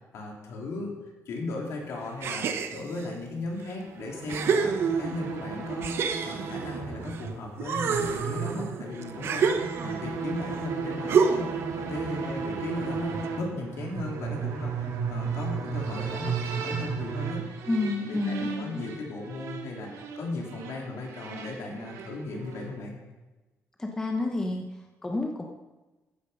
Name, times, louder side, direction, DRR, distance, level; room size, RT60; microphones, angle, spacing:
voice 1, 0.1-0.9 1.2-11.5 11.8-17.6 18.1-23.0, left 2 dB, 65° left, 0 dB, 3.4 m, -37 dB
sound 1, 2.2-3.1 3.7-3.8 4.3-5.3 5.8-7.2 7.6-10.1 11.1-11.7, right 6 dB, 50° right, 0.9 m, -27 dB
sound 2, 3.8-22.8, right 5 dB, 85° right, 2.1 m, -35 dB
voice 2, 17.7-18.8 23.8-25.4, left 2 dB, 10° left, 2 dB, 0.9 m, -30 dB
15.0 x 9.6 x 5.6 m, 1.1 s
cardioid pair, 180°, 5 cm